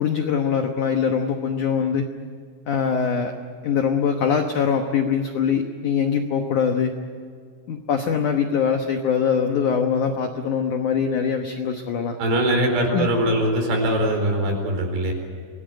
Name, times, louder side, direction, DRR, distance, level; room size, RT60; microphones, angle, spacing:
voice 1, 0.0-2.1 2.7-3.3 3.6-6.9 7.7-12.2 12.9-13.1, left 6 dB, 70° left, 5 dB, 1.9 m, -23 dB
voice 2, 12.2-15.1, right 1 dB, 65° right, 3 dB, 6.5 m, -22 dB
25.0 x 18.0 x 9.2 m, 2.1 s
omnidirectional pair, 5.2 m